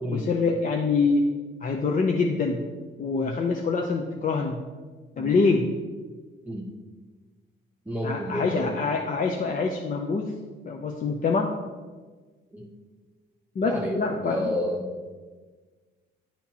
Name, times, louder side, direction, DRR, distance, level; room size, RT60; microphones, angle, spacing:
voice 1, 0.1-1.3 1.6-2.6 3.0-4.6 5.2-5.7 8.0-10.3 10.7-11.5 13.6-14.5, left 4 dB, 45° left, 1 dB, 0.6 m, -25 dB
voice 2, 7.9-8.8 12.5-12.7 13.6-14.9, equal, 10° right, -3 dB, 0.8 m, -30 dB
10.0 x 4.3 x 2.8 m, 1.4 s
cardioid pair, 90°, 20 cm